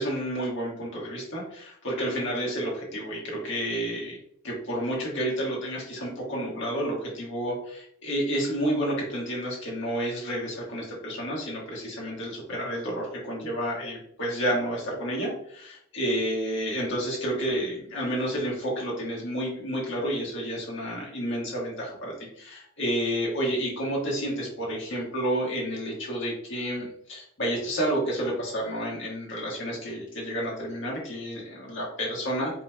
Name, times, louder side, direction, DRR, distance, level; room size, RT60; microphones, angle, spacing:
voice 1, 0.0-4.2 4.4-32.5, equal, 60° left, -4 dB, 1.4 m, -30 dB
4.4 x 2.9 x 2.3 m, 0.69 s
head